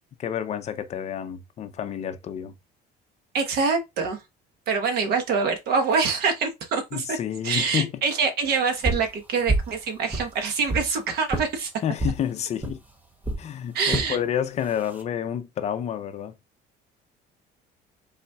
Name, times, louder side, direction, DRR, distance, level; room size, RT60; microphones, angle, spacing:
voice 1, 0.2-2.5 6.9-8.0 11.8-12.8 13.4-16.3, left 9 dB, 35° left, 0.6 m, -29 dB
voice 2, 3.3-4.2 4.7-7.2 7.4-11.7 13.7-14.2, right 5 dB, 60° right, 1.2 m, -25 dB
sound 1, 8.8-9.1 9.5-9.8 10.1-10.9 11.3-11.5 12.0-12.2 12.6-12.8 13.2-13.4 13.9-14.1 14.7-15.0, right 2 dB, 10° right, 0.7 m, -27 dB
5.5 x 4.1 x 2.3 m
cardioid pair, 150°, 19 cm